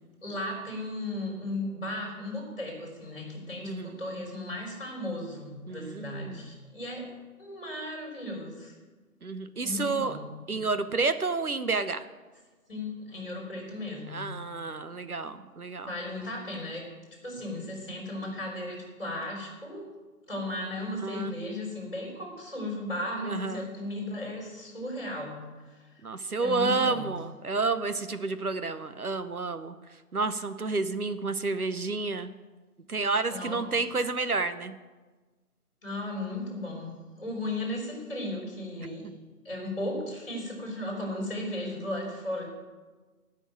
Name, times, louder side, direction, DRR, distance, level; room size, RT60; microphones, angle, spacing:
voice 1, 0.2-7.1 7.4-8.7 9.6-10.7 12.7-14.3 15.8-16.9 17.2-19.9 20.3-25.9 26.4-27.1 33.3-33.6 35.8-39.1 39.4-42.5, left 1 dB, 35° left, -1 dB, 4.1 m, -36 dB
voice 2, 3.6-4.0 5.7-6.4 9.2-10.1 10.5-12.0 14.1-15.9 21.0-21.3 23.3-23.7 26.0-29.7 30.1-32.3 32.9-34.7, right 3 dB, 65° right, 11 dB, 1.0 m, -30 dB
13.5 x 6.3 x 8.8 m, 1.3 s
figure-of-eight pair, 180°, 47 cm